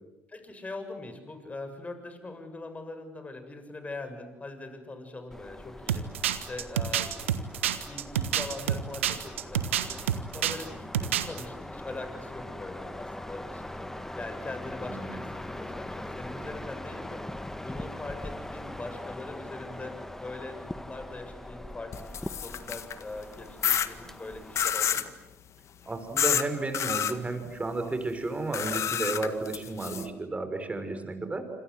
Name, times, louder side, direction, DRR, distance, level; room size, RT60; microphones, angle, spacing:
voice 1, 0.3-7.5 7.8-10.0 10.3-25.1, left 2 dB, 20° left, 7 dB, 7.0 m, -42 dB
sound 1, 5.3-24.7, left 1 dB, 5° left, 1.8 m, -41 dB
sound 2, 5.9-10.6 10.9-11.4, right 10 dB, 85° right, 1.5 m, -28 dB
sound 3, 21.9-23.0 23.6-23.9 24.6-25.1 26.2-26.4 26.7-27.1 28.5-30.1, left 8 dB, 45° left, 1.7 m, -28 dB
voice 2, 25.9-31.5, right 2 dB, 20° right, 8 dB, 6.2 m, -33 dB
28.0 x 26.5 x 8.0 m, 1.0 s
hypercardioid pair, 60°, 7 cm